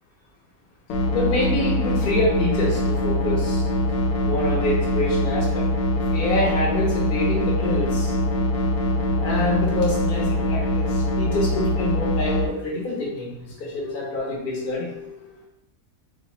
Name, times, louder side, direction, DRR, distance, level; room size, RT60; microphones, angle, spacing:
sound 1, 0.9-12.5, left 1 dB, 75° left, 1.0 m, -23 dB
voice 1, 1.1-3.6 4.3-5.6 6.1-8.1 9.2-15.3, left 2 dB, 45° left, -4 dB, 0.8 m, -26 dB
2.7 x 2.2 x 4.1 m, 0.75 s
omnidirectional pair, 1.6 m